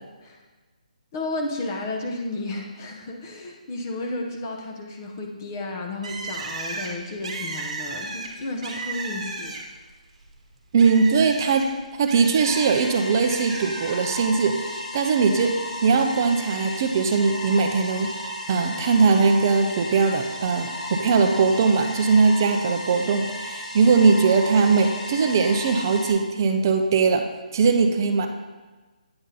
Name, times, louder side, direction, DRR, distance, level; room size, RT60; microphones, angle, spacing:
voice 1, 1.1-9.6, left 2 dB, 20° left, 2 dB, 0.6 m, -32 dB
Bird, 6.0-9.9 10.2-12.8 13.3-13.9, right 3 dB, 45° right, 1.1 m, -34 dB
voice 2, 10.7-11.7 12.0-14.6 14.9-15.5 15.8-18.1 18.5-27.2 27.5-28.3, right 4 dB, 25° right, 5 dB, 0.4 m, -20 dB
sound 1, 12.4-26.1, left 1 dB, 55° left, 1.1 m, -34 dB
8.7 x 3.7 x 4.1 m, 1.3 s
hypercardioid pair, 175°, 4 cm